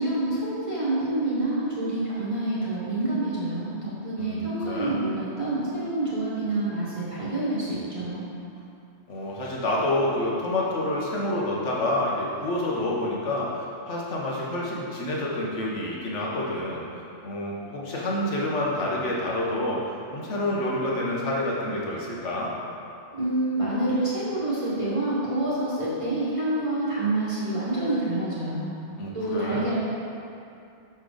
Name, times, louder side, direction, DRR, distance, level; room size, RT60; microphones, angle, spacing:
voice 1, 0.0-8.2 23.1-28.7 29.1-29.8, right 2 dB, 30° right, -9 dB, 1.1 m, -27 dB
voice 2, 4.2-5.0 9.1-13.5 13.9-16.8 17.2-19.8 20.1-22.5 29.0-29.7, left 1 dB, 85° left, -4 dB, 1.4 m, -28 dB
5.8 x 4.4 x 4.9 m, 2.6 s
omnidirectional pair, 1.2 m